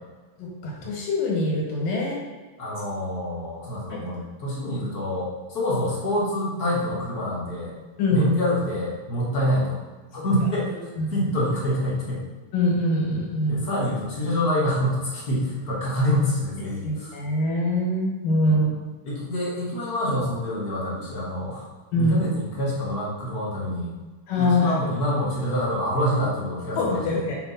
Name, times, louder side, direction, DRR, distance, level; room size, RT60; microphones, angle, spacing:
voice 1, 0.4-2.2 3.9-4.0 8.0-8.3 11.0-11.3 12.5-13.6 16.8-18.7 21.9-22.2 24.3-24.7 26.8-27.4, left 1 dB, 80° left, -2 dB, 3.3 m, -24 dB
voice 2, 2.6-7.7 8.1-9.8 10.1-10.7 11.1-12.2 13.5-17.2 18.4-18.7 19.0-21.6 21.9-23.9 24.4-27.2, equal, 40° left, -6 dB, 1.4 m, -26 dB
7.0 x 5.3 x 4.2 m, 1.3 s
omnidirectional pair, 3.9 m